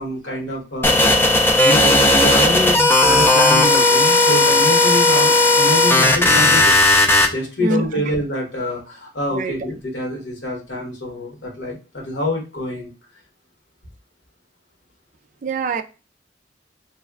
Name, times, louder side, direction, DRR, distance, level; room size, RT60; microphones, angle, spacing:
voice 1, 0.0-6.8 7.3-12.9, left 1 dB, 70° left, 1.4 m, -26 dB
sound 1, 0.8-7.3, left 2 dB, 15° left, 0.5 m, -14 dB
voice 2, 15.4-15.8, right 4 dB, 45° right, 0.4 m, -23 dB
3.2 x 2.2 x 3.5 m
head